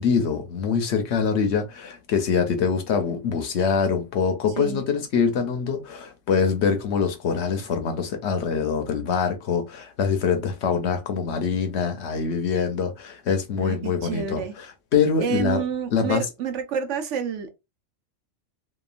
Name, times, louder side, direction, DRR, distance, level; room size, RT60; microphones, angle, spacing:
voice 1, 0.0-14.7 14.9-15.6 15.9-16.3, left 6 dB, 65° left, 0.9 m, -24 dB
voice 2, 13.6-14.5 15.2-17.5, right 7 dB, 70° right, 0.9 m, -29 dB
2.9 x 2.2 x 2.4 m
omnidirectional pair, 1.3 m